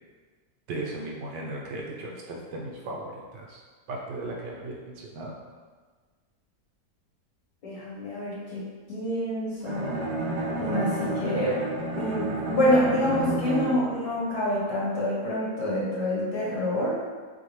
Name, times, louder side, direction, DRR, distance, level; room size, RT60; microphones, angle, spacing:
voice 1, 0.7-3.6 3.9-5.3, right 2 dB, 85° right, -2 dB, 1.5 m, -36 dB
voice 2, 7.6-8.6 8.9-9.9 10.6-11.6 11.9-17.0, left 1 dB, 70° left, -6 dB, 1.8 m, -27 dB
Bowed string instrument, 9.6-14.0, right 1 dB, 65° right, 1.1 m, -30 dB
6.5 x 2.2 x 3.2 m, 1.5 s
omnidirectional pair, 1.8 m